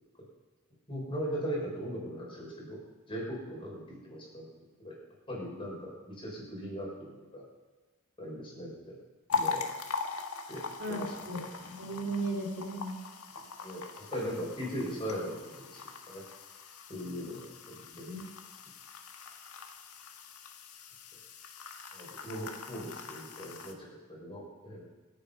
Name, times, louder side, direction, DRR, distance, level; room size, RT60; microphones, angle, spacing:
voice 1, 0.9-2.8 3.1-4.5 4.8-5.0 5.3-7.4 8.2-9.0 9.3-9.6 10.5-10.6 10.9-11.5 13.6-13.8 14.1-16.2 16.9-18.1 21.9-24.9, equal, 25° left, -4 dB, 6.3 m, -39 dB
sound 1, 9.3-23.7, left 5 dB, 85° left, 1.6 m, -41 dB
voice 2, 10.8-11.4 11.7-12.9 17.9-18.2, right 2 dB, 60° right, 0 dB, 2.7 m, -36 dB
26.0 x 8.8 x 5.6 m, 1.2 s
head